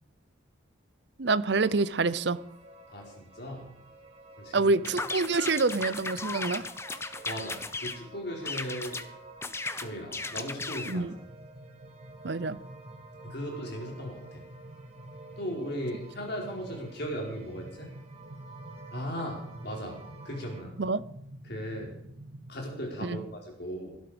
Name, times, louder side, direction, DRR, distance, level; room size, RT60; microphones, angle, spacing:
voice 1, 1.2-2.4 4.5-6.6 10.8-11.1 12.2-12.6 20.8-21.0 23.0-23.2, right 3 dB, 55° right, 16 dB, 0.7 m, -27 dB
sound 1, 1.5-20.6, right 3 dB, 30° right, 2.9 m, -51 dB
voice 2, 2.9-3.7 4.4-4.7 7.2-9.0 9.8-11.0 13.2-14.4 15.4-17.9 18.9-20.0 20.2-20.7 21.4-21.9 22.5-24.0, equal, 55° left, 0 dB, 4.8 m, -37 dB
sound 2, 4.8-8.0 8.4-9.1 9.4-11.0, left 3 dB, 15° left, 0.6 m, -36 dB
sound 3, 11.1-23.2, right 1 dB, 80° right, 2.1 m, -48 dB
17.5 x 12.5 x 5.2 m, 0.73 s
head